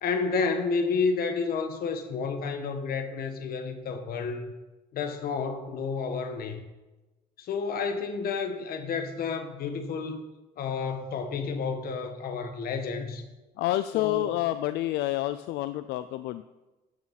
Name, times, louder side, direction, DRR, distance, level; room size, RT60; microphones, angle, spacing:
voice 1, 0.0-4.5 4.9-6.7 7.4-10.2 10.6-13.2 13.9-14.3, left 5 dB, 60° left, 7 dB, 1.5 m, -30 dB
voice 2, 13.6-16.4, left 15 dB, 85° left, 12 dB, 0.5 m, -28 dB
14.0 x 8.8 x 4.2 m, 1.1 s
cardioid pair, 110°, 17 cm